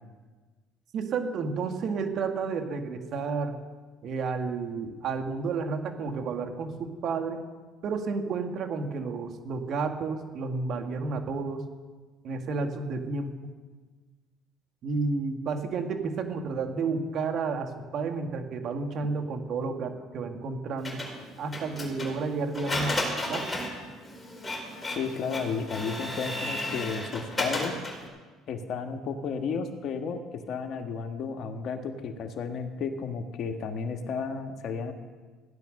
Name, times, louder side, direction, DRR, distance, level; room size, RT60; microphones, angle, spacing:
voice 1, 0.9-3.6 4.0-7.4 7.8-11.6 12.2-13.3 14.8-21.0 21.4-23.5, right 4 dB, 55° right, 5 dB, 2.0 m, -31 dB
Printer, 20.8-28.1, left 1 dB, 15° left, 3.9 m, -34 dB
voice 2, 24.9-27.7 28.5-34.9, left 5 dB, 55° left, 5 dB, 1.6 m, -33 dB
15.5 x 10.5 x 6.5 m, 1.4 s
supercardioid pair, 95°, 0 cm